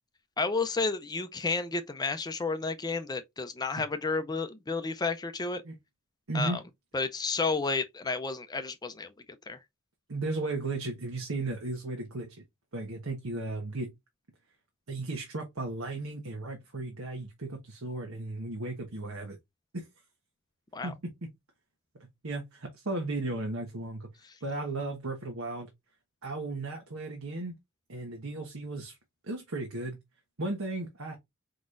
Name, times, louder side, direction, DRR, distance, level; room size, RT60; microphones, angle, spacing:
voice 1, 0.4-5.6 6.3-6.6 6.9-9.1 9.5-9.6 20.7-20.9, left 4 dB, 20° left, 0.5 m, -31 dB
voice 2, 10.1-12.3 12.7-13.9 14.9-19.4 19.7-19.9 20.8-21.3 22.2-24.1 24.4-25.7 26.2-27.5 27.9-29.0 29.2-30.0 30.4-31.2, right 2 dB, 80° right, 1.3 m, -35 dB
4.9 x 4.0 x 2.5 m
head